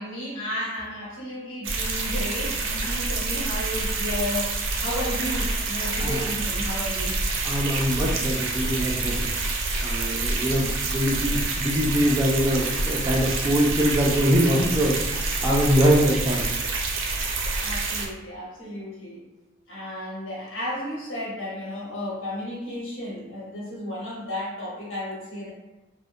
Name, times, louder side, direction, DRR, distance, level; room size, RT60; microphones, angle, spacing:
voice 1, 0.0-7.2 17.0-19.2 19.7-25.5, left 1 dB, 80° left, -6 dB, 1.0 m, -33 dB
sound 1, 1.6-18.1, right 3 dB, 80° right, 0.5 m, -27 dB
voice 2, 7.4-9.3 9.8-16.4, equal, 15° right, -4 dB, 0.3 m, -23 dB
2.6 x 2.1 x 2.4 m, 1.1 s
head